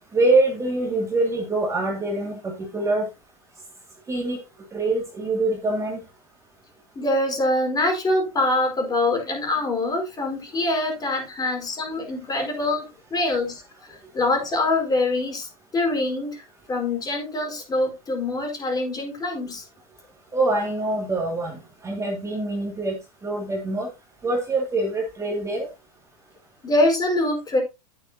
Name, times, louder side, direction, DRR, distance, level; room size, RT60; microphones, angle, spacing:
voice 1, 0.1-2.3 2.7-3.1 4.1-4.4 4.7-6.0 20.3-21.5 21.8-22.9 23.2-23.9 24.2-25.7, right 2 dB, 15° right, 0 dB, 2.7 m, -24 dB
voice 2, 6.9-13.6 13.9-16.4 16.7-19.6 26.6-27.6, left 2 dB, 20° left, 2 dB, 4.8 m, -24 dB
11.0 x 8.7 x 2.9 m, 0.25 s
hypercardioid pair, 110°, 19 cm